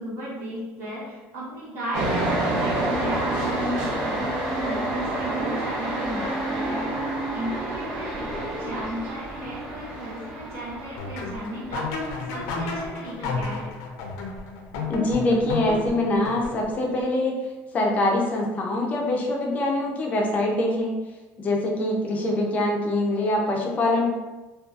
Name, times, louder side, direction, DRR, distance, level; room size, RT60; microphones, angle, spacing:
voice 1, 0.0-4.3 4.6-6.9 7.3-13.7, equal, 50° right, -8 dB, 1.2 m, -35 dB
sound 1, 1.9-12.3, right 1 dB, 75° right, 0.8 m, -29 dB
sound 2, 2.6-8.9, equal, 25° right, 0.8 m, -38 dB
sound 3, 11.0-16.9, left 3 dB, 85° left, 0.4 m, -32 dB
voice 2, 14.9-17.4 17.7-21.0 21.4-24.1, left 1 dB, 25° left, -1 dB, 0.4 m, -24 dB
2.5 x 2.2 x 2.4 m, 1.2 s
cardioid pair, 165°, 6 cm